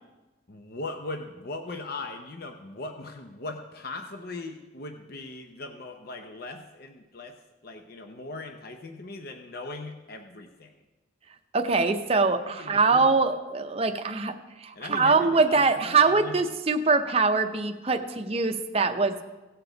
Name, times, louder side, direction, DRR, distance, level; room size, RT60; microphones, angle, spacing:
voice 1, 0.5-7.4 7.6-10.7 12.5-13.1 14.7-16.4, left 2 dB, 50° left, 5 dB, 0.7 m, -39 dB
voice 2, 11.5-19.2, right 4 dB, 30° right, 6 dB, 0.6 m, -23 dB
17.0 x 6.9 x 3.9 m, 1.1 s
head